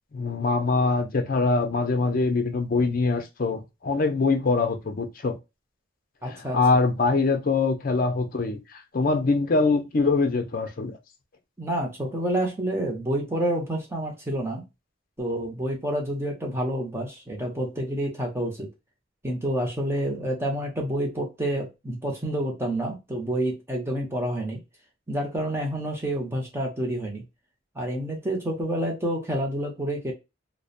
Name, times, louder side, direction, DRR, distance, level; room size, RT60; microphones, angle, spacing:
voice 1, 0.1-5.4 6.2-10.9, left 3 dB, 45° left, 0.5 m, -23 dB
voice 2, 6.2-6.6 11.6-14.7 15.2-18.7 19.2-24.6 25.1-27.2 27.8-30.1, right 1 dB, 15° right, 0.6 m, -28 dB
2.7 x 2.1 x 2.4 m
head